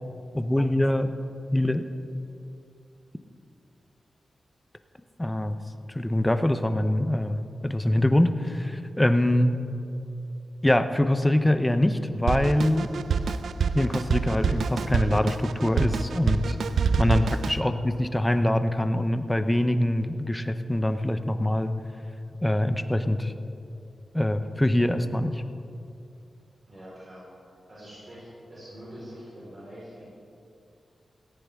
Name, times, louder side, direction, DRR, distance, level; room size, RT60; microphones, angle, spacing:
voice 1, 0.3-1.1 1.5-1.8 5.2-5.6 5.9-9.6 10.6-12.9 13.7-16.6 17.0-21.7 22.4-23.3 24.1-25.4, left 1 dB, 10° left, 9 dB, 0.6 m, -24 dB
Drum kit, 12.3-17.6, right 5 dB, 90° right, 0.4 m, -26 dB
voice 2, 26.7-27.2 27.7-28.2 28.5-30.0, equal, 30° right, -9 dB, 4.2 m, -44 dB
17.5 x 15.0 x 3.5 m, 2.7 s
wide cardioid pair, 145°, 0 cm